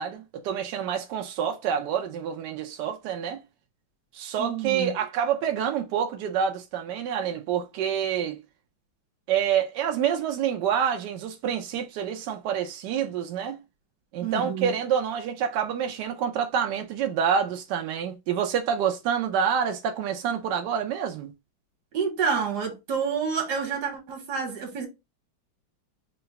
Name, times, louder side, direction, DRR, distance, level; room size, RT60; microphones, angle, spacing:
voice 1, 0.0-3.4 4.1-8.4 9.3-13.6 14.1-21.3, right 8 dB, 75° right, 0.9 m, -27 dB
voice 2, 4.4-4.9 14.2-14.7 21.9-24.9, right 6 dB, 55° right, 1.5 m, -28 dB
3.8 x 2.2 x 3.9 m
omnidirectional pair, 2.3 m